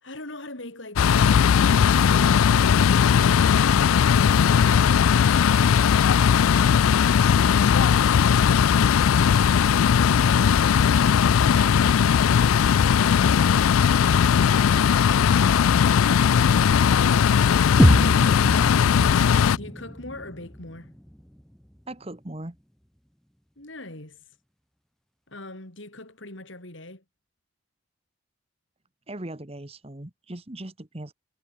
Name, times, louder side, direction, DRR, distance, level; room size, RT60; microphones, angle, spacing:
voice 1, 0.0-3.7 19.5-21.0 23.6-24.2 25.3-27.0, left 2 dB, 65° left, 4.2 m, -41 dB
sound 1, 1.0-19.6, left 7 dB, 85° left, 0.4 m, -18 dB
sound 2, 2.2-11.7, right 2 dB, 45° right, 3.3 m, -55 dB
sound 3, 17.8-21.8, equal, ahead, 0.4 m, -25 dB
voice 2, 21.9-22.6 29.1-31.1, right 1 dB, 30° right, 1.4 m, -39 dB
head